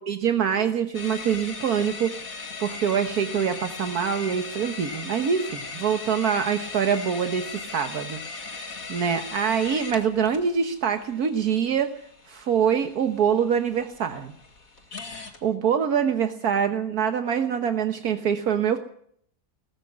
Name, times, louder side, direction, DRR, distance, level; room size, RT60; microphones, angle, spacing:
voice 1, 0.1-11.9 12.3-14.3 15.0-18.8, right 7 dB, 75° right, 7 dB, 1.7 m, -25 dB
sound 1, 0.9-15.4, left 4 dB, 60° left, 2.6 m, -39 dB
19.0 x 15.0 x 9.7 m, 0.65 s
omnidirectional pair, 1.7 m